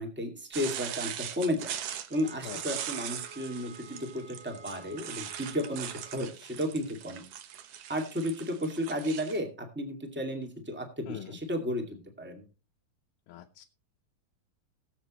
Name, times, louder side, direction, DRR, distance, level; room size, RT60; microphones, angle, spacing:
voice 1, 0.0-1.7 2.1-7.2 7.9-12.4, equal, 5° right, 3 dB, 1.1 m, -33 dB
sound 1, 0.5-9.4, right 10 dB, 90° right, 1.4 m, -40 dB
sound 2, 2.1-6.3, right 4 dB, 30° right, 2.9 m, -51 dB
voice 2, 2.4-2.8 11.1-11.4 13.3-13.6, left 9 dB, 80° left, 2 dB, 2.6 m, -43 dB
20.0 x 7.5 x 3.0 m, 0.34 s
omnidirectional pair, 4.3 m